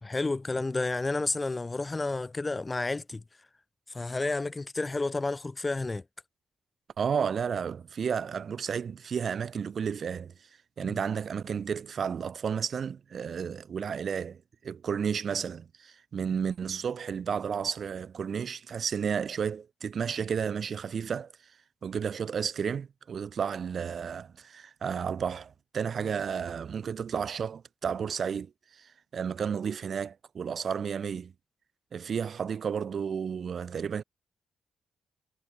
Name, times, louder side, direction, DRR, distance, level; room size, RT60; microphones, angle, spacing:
voice 1, 0.0-3.2 3.9-6.0 10.8-11.0, left 3 dB, 25° left, 1.6 m, -31 dB
voice 2, 7.0-10.3 10.8-21.3 21.8-31.3 31.9-34.0, right 7 dB, 60° right, 4.9 m, -32 dB
supercardioid pair, 60°, 0 cm